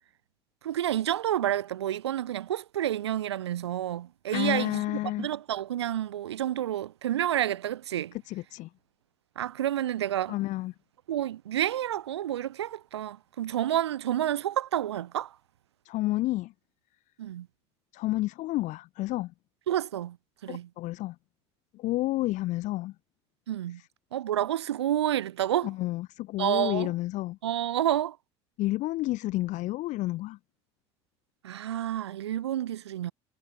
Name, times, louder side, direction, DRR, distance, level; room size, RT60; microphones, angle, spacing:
voice 1, 0.6-4.8 5.2-8.1 9.4-10.3 11.1-15.3 17.2-17.5 19.7-20.2 20.4-20.7 23.5-23.8 24.1-25.7 26.4-26.9 27.4-28.2 31.4-33.1, right 12 dB, 90° right, 1.7 m, -29 dB
voice 2, 4.3-5.3 8.3-8.7 10.3-10.7 15.8-16.5 17.9-19.3 20.5-21.2 21.7-22.9 23.8-23.9 25.6-27.4 28.6-30.4, left 17 dB, 65° left, 5.8 m, -30 dB
hypercardioid pair, 70°, 14 cm